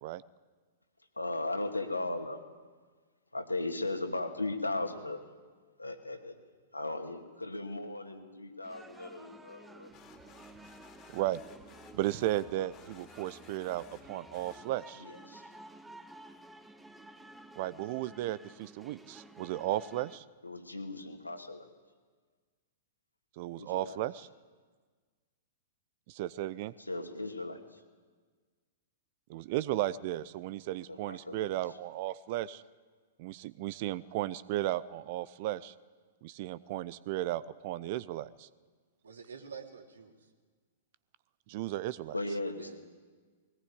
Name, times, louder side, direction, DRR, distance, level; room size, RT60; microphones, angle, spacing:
voice 1, 1.2-2.4 3.3-5.3 5.8-6.3 6.7-10.0 15.0-15.5 20.4-21.7 23.6-24.0 26.8-27.8 30.9-31.6 42.1-42.8, left 2 dB, 85° left, 4 dB, 2.6 m, -37 dB
sound 1, 8.6-20.2, right 2 dB, 5° right, 1.3 m, -53 dB
sound 2, 9.9-15.1, left 5 dB, 30° left, 2.7 m, -57 dB
voice 2, 11.9-15.0 17.6-20.2 23.4-24.3 26.1-26.7 29.3-32.6 33.2-35.7 36.2-38.5 41.5-42.2, right 14 dB, 45° right, 19 dB, 0.7 m, -35 dB
voice 3, 39.0-40.3 42.6-42.8, right 6 dB, 70° right, 4 dB, 2.9 m, -48 dB
21.0 x 18.5 x 9.6 m, 1.5 s
figure-of-eight pair, 105°, 0 cm